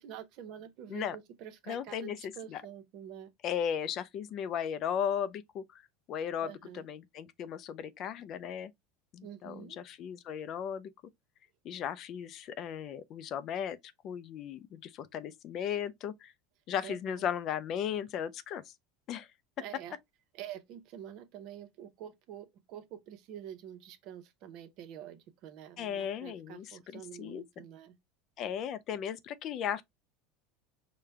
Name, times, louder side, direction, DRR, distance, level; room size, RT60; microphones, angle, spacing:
voice 1, 0.0-3.3 6.4-6.9 9.2-9.8 16.8-17.3 19.6-20.0 20.3-28.0, right 10 dB, 55° right, 0.8 m, -47 dB
voice 2, 1.7-2.6 3.4-5.8 6.1-8.7 9.1-10.9 11.6-16.3 16.7-18.7 19.1-19.3 25.8-27.6 28.4-29.8, left 8 dB, 45° left, 0.4 m, -36 dB
4.9 x 2.2 x 3.3 m
supercardioid pair, 125°, 0 cm